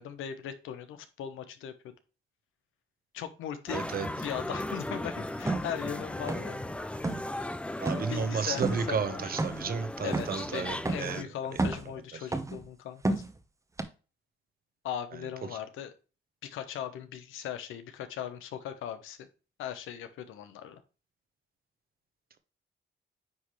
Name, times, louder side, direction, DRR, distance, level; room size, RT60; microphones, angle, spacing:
voice 1, 0.0-1.7 3.1-3.9 4.2-6.7 7.9-9.3 10.0-13.2 14.8-15.9 16.4-19.2 19.6-20.8, left 9 dB, 85° left, 1.0 m, -39 dB
sound 1, 3.7-11.2, left 1 dB, 5° left, 0.4 m, -37 dB
voice 2, 3.7-4.1 7.8-11.3, right 6 dB, 50° right, 1.0 m, -32 dB
sound 2, 5.5-5.7 6.3-6.6 6.9-7.3 7.8-8.1 8.6-8.8 9.4-9.7 10.1-10.4 10.8-11.1 11.5-11.9 12.3-12.6 13.0-13.4 13.8-13.9, right 2 dB, 15° right, 0.9 m, -30 dB
9.4 x 3.2 x 3.1 m
cardioid pair, 90°, 20 cm